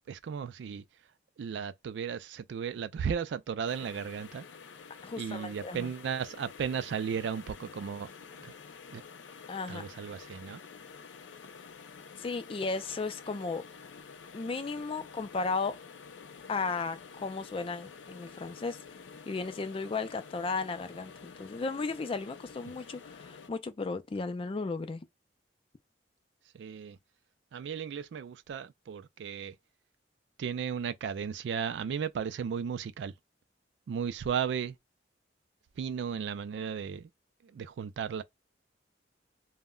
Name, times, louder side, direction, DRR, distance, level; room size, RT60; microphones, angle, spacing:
voice 1, 0.1-0.8 1.4-4.4 5.2-8.1 8.4-8.5 8.9-9.0 9.7-10.6 26.5-27.0 27.5-29.6 30.4-33.1 33.9-34.8 35.8-37.1 37.4-38.2, right 7 dB, 70° right, 0.3 m, -35 dB
sound 1, 3.7-23.5, left 5 dB, 85° left, 0.5 m, -49 dB
voice 2, 5.0-5.9 9.5-9.8 12.2-13.6 14.3-15.8 16.5-18.8 19.3-25.0, left 4 dB, 30° left, 0.4 m, -35 dB
2.1 x 2.1 x 3.6 m
head